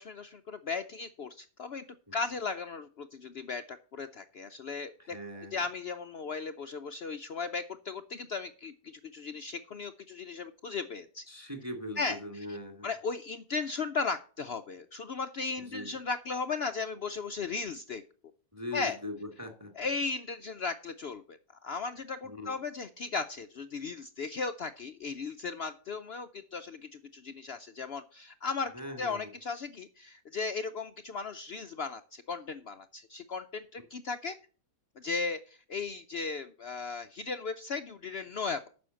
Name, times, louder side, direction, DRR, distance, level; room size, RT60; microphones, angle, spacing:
voice 1, 0.0-1.8 2.1-5.2 5.5-11.2 12.0-12.2 12.8-18.0 18.7-19.0 19.8-21.4 21.6-28.7 29.0-34.4 35.0-38.7, left 4 dB, 70° left, 9 dB, 0.6 m, -36 dB
voice 2, 5.0-5.6 11.3-12.9 15.6-15.9 18.5-19.7 22.2-22.5 28.7-29.3, left 1 dB, 10° right, 6 dB, 1.8 m, -41 dB
9.5 x 6.3 x 7.5 m, 0.41 s
omnidirectional pair, 1.7 m